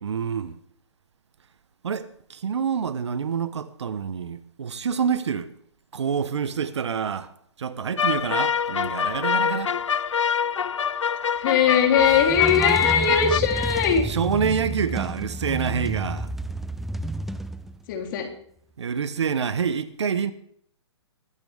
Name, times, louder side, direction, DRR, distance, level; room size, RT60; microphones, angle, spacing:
voice 1, 0.0-0.6 1.8-5.5 5.9-7.3 7.6-9.7 14.0-16.3 18.8-20.3, right 7 dB, 70° right, 1.2 m, -27 dB
sound 1, 8.0-13.4, left 7 dB, 85° left, 0.5 m, -25 dB
voice 2, 11.4-14.1 17.9-18.3, left 7 dB, 45° left, 3.6 m, -20 dB
sound 2, 12.0-18.0, right 1 dB, ahead, 0.5 m, -31 dB
23.0 x 9.5 x 3.6 m
hypercardioid pair, 130°, 15 cm